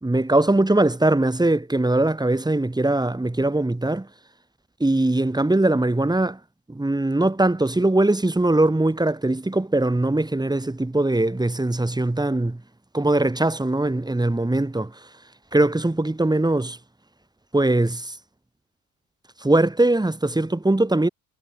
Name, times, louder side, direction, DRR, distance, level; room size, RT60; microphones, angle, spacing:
voice 1, 0.0-4.1 4.8-6.4 6.7-12.6 12.9-15.0 15.5-16.8 17.5-18.2 19.4-21.1, right 2 dB, 10° right, 2.0 m, -21 dB
supercardioid pair, 65°, 42 cm